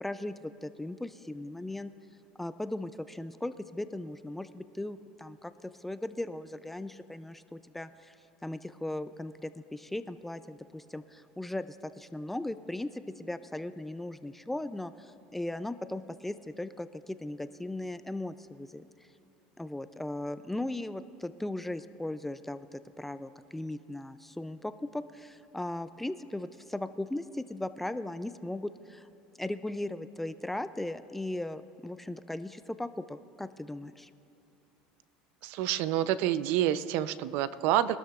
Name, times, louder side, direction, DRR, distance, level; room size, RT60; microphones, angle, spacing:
voice 1, 0.0-1.9 2.4-8.2 8.4-18.9 19.6-29.1 29.4-34.1, left 1 dB, 5° left, 12 dB, 0.3 m, -38 dB
voice 2, 35.4-38.0, right 12 dB, 65° right, 14 dB, 0.5 m, -28 dB
23.0 x 12.5 x 2.4 m, 2.8 s
supercardioid pair, 135°, 3 cm